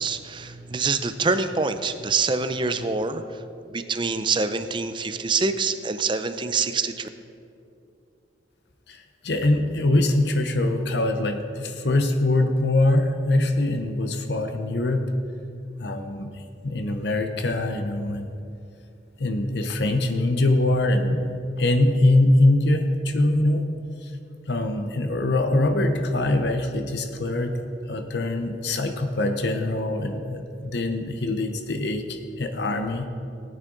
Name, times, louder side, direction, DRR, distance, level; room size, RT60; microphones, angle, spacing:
voice 1, 0.0-3.2 3.7-7.1, right 4 dB, 25° right, 10 dB, 0.5 m, -25 dB
voice 2, 8.9-15.1 15.8-18.3 19.2-23.7 24.0-24.1 24.5-27.6 27.9-33.1, left 2 dB, 65° left, 6 dB, 0.8 m, -23 dB
18.0 x 9.0 x 3.9 m, 2.6 s
head